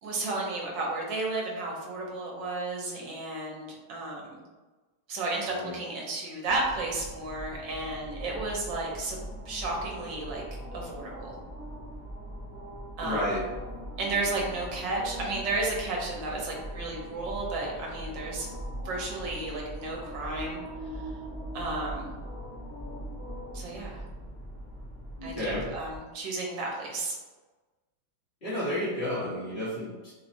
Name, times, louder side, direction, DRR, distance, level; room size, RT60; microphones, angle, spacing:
voice 1, 0.0-4.4 5.1-9.2 9.5-10.4 10.7-11.4 13.0-13.3 14.0-18.5 18.8-20.6 20.9-21.1 21.5-22.2 23.5-24.0 25.2-27.2, right 2 dB, 70° right, -2 dB, 1.3 m, -33 dB
sound 1, 6.5-26.0, equal, 5° left, 0.5 m, -41 dB
voice 2, 13.0-13.4 25.2-25.7 28.4-30.1, left 1 dB, 45° left, -11 dB, 0.7 m, -31 dB
3.3 x 3.1 x 2.5 m, 1.2 s
omnidirectional pair, 2.2 m